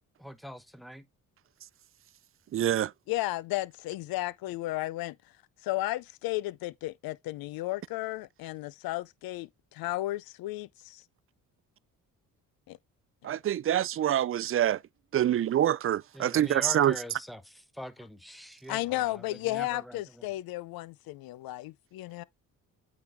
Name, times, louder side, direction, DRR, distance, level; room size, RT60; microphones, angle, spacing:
voice 1, 0.2-1.1 16.1-20.3, equal, ahead, 1.0 m, -43 dB
voice 2, 2.5-2.9 13.2-14.8 15.1-16.9, right 11 dB, 40° right, 0.4 m, -26 dB
voice 3, 3.1-5.2 5.6-11.0 12.7-12.8 18.7-22.2, left 17 dB, 80° left, 0.6 m, -34 dB
8.7 x 3.9 x 3.5 m
cardioid pair, 80°, 35 cm